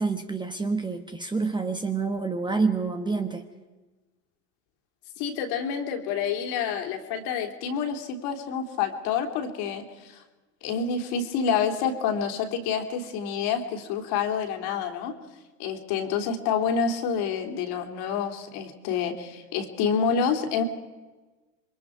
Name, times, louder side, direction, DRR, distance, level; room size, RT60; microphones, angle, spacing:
voice 1, 0.0-3.4, right 4 dB, 10° right, 6 dB, 1.3 m, -27 dB
voice 2, 5.2-10.2 10.6-15.1 15.6-20.6, left 6 dB, 50° left, 4 dB, 3.4 m, -28 dB
27.5 x 23.0 x 4.8 m, 1.2 s
hypercardioid pair, 105°, 49 cm